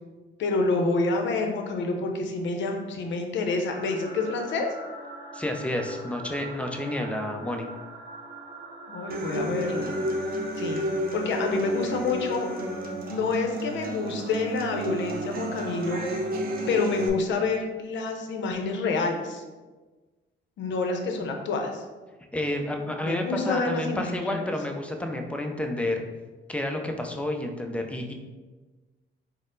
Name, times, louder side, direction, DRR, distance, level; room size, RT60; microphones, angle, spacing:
voice 1, 0.4-4.7 8.9-9.9 10.6-10.8 11.1-12.5 13.1-16.0 16.7-19.4 20.6-21.8 23.0-24.4, left 3 dB, 70° left, 3 dB, 0.6 m, -28 dB
sound 1, 3.7-10.2, right 2 dB, 30° right, 1.0 m, -42 dB
voice 2, 5.3-7.7 22.3-26.0 26.5-28.1, left 1 dB, 5° left, 3 dB, 0.5 m, -30 dB
Human voice / Acoustic guitar, 9.1-17.1, right 1 dB, 50° right, 0.6 m, -31 dB
4.1 x 2.0 x 3.8 m, 1.3 s
cardioid pair, 90°, 20 cm